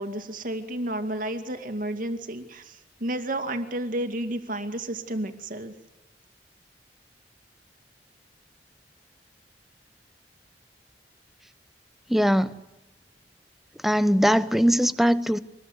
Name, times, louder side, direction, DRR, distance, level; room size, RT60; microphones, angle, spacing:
voice 1, 0.0-5.7, right 1 dB, 50° right, 2.3 m, -31 dB
voice 2, 12.1-12.6 13.8-15.4, equal, ahead, 0.9 m, -21 dB
25.5 x 20.5 x 8.3 m
head